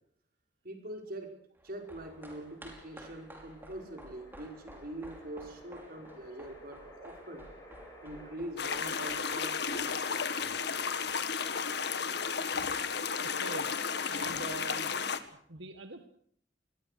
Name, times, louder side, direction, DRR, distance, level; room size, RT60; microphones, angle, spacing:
voice 1, 0.6-1.3 1.6-7.5 8.0-10.6, right 1 dB, 50° right, 3 dB, 5.2 m, -44 dB
sound 1, 1.5-12.1 12.4-12.5, right 1 dB, 10° right, 5.3 m, -54 dB
sound 2, 1.7-8.4, equal, 20° left, 7.8 m, -56 dB
sound 3, 8.6-15.2, left 6 dB, 60° left, 1.8 m, -33 dB
voice 2, 13.2-13.7 14.1-14.9 15.5-16.1, right 2 dB, 80° right, 7 dB, 1.7 m, -44 dB
26.5 x 21.5 x 6.6 m, 0.64 s
head